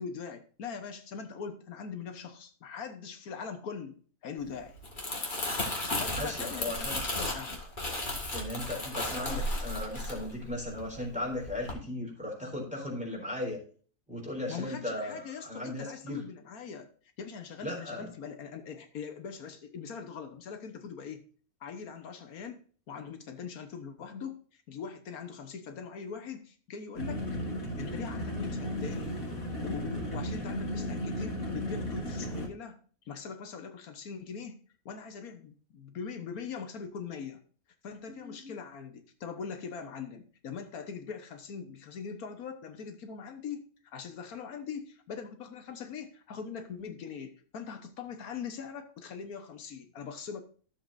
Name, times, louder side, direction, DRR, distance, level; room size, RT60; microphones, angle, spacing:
voice 1, 0.0-4.8 5.9-7.6 14.5-16.9 17.2-21.2 21.6-27.3 27.8-29.2 29.6-32.8 33.1-34.6 34.8-37.4 37.8-43.6 43.9-50.4, left 6 dB, 85° left, 7 dB, 1.5 m, -41 dB
Crumpling crinkling, 4.7-11.1 11.4-11.7, left 1 dB, 35° left, 2.2 m, -34 dB
voice 2, 6.2-7.0 8.3-13.6 14.1-16.2 17.6-18.1 38.1-38.5, left 1 dB, 5° right, -2 dB, 3.8 m, -37 dB
sound 1, 27.0-32.5, equal, 70° left, 2.4 m, -35 dB
14.0 x 7.3 x 2.6 m, 0.42 s
omnidirectional pair, 1.5 m